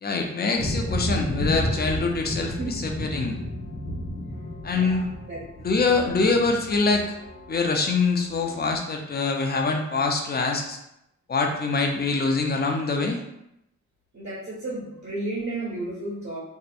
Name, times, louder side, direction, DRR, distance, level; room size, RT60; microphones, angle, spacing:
voice 1, 0.0-3.4 4.6-5.0 5.6-7.1 7.5-10.8 11.3-13.2, left 4 dB, 35° left, 3 dB, 0.4 m, -24 dB
sound 1, 0.6-8.8, left 1 dB, 75° left, 0.6 m, -32 dB
voice 2, 4.7-5.4 6.2-6.4 14.1-16.4, right 2 dB, 60° right, -9 dB, 1.3 m, -33 dB
2.7 x 2.1 x 2.4 m, 0.80 s
cardioid pair, 75°, 29 cm